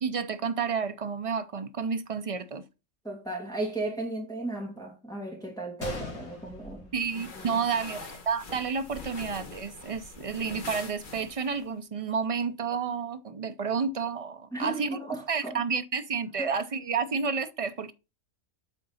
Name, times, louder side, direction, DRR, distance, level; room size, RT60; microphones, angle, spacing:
voice 1, 0.0-2.6 6.9-15.0 15.3-17.9, right 5 dB, 55° right, 0.4 m, -30 dB
voice 2, 3.0-6.9 7.2-7.6 14.5-15.6 16.4-16.5, right 2 dB, 5° left, 2.4 m, -35 dB
Gunshot gunfire, 5.8-7.8 8.1-8.2 8.9-9.1, left 3 dB, 70° left, 2.2 m, -41 dB
sound 1, 7.0-11.7, left 3 dB, 40° left, 1.3 m, -44 dB
8.3 x 3.9 x 5.6 m
omnidirectional pair, 1.4 m